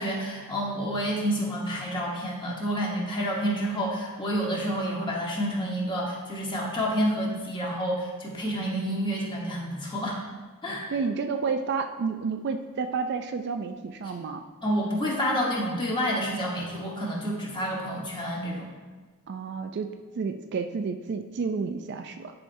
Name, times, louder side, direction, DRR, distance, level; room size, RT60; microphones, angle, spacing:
voice 1, 0.0-10.2 10.6-10.9 14.6-18.7, equal, 20° left, -3 dB, 1.3 m, -29 dB
voice 2, 10.9-14.4 19.3-22.3, right 5 dB, 50° right, 7 dB, 0.3 m, -30 dB
10.5 x 4.3 x 2.7 m, 1.3 s
head